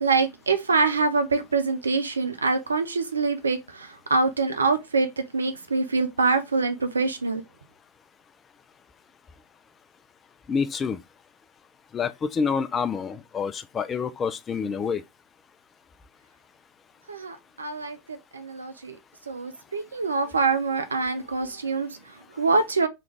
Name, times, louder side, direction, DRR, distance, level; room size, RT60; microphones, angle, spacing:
voice 1, 0.0-7.4 17.1-19.0 19.3-22.9, right 4 dB, 75° right, 0.4 m, -25 dB
voice 2, 10.5-11.0 11.9-15.0, left 6 dB, 20° left, 0.3 m, -27 dB
3.1 x 2.4 x 3.3 m
figure-of-eight pair, 90°, 0 cm